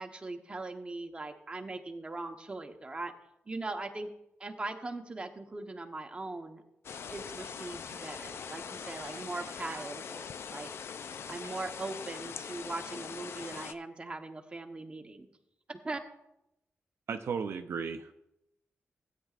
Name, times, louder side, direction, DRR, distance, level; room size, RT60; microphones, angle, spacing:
voice 1, 0.0-3.1 3.5-4.1 4.4-6.6 7.1-10.7 11.3-15.3 15.7-16.0, right 2 dB, 25° right, 4 dB, 1.0 m, -40 dB
sound 1, 6.8-13.7, left 6 dB, 70° left, 0.4 m, -42 dB
voice 2, 17.1-18.1, right 6 dB, 70° right, 7 dB, 0.6 m, -36 dB
16.0 x 9.3 x 2.5 m, 0.85 s
wide cardioid pair, 120°, 4 cm